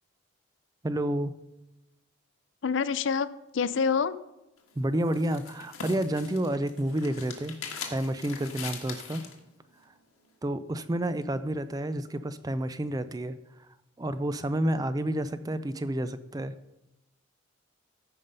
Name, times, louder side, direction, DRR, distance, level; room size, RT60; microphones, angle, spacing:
voice 1, 0.8-1.3 4.8-7.5 7.9-9.3 10.4-13.3 14.0-16.5, right 1 dB, 15° right, 13 dB, 0.3 m, -30 dB
voice 2, 2.6-4.2, left 6 dB, 60° left, 16 dB, 0.4 m, -27 dB
sound 1, 4.6-9.4, left 5 dB, 90° left, 1.6 m, -42 dB
14.0 x 5.3 x 5.4 m, 0.94 s
head